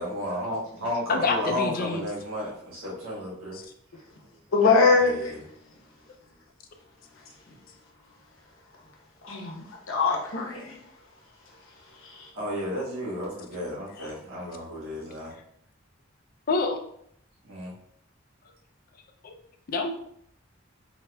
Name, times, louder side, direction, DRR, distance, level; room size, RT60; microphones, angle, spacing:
voice 1, 0.0-3.6 4.9-5.4 12.3-15.3 17.4-17.7, equal, 80° right, -5 dB, 1.4 m, -33 dB
voice 2, 1.1-2.1 3.5-3.7 13.9-14.1 15.3-15.4 16.5-16.8 18.9-19.3 19.7-19.9, left 4 dB, 45° left, 6 dB, 0.4 m, -28 dB
voice 3, 4.5-5.3 9.2-10.7 12.0-12.3, left 4 dB, 85° left, 0 dB, 0.9 m, -23 dB
4.2 x 2.8 x 2.3 m, 0.69 s
head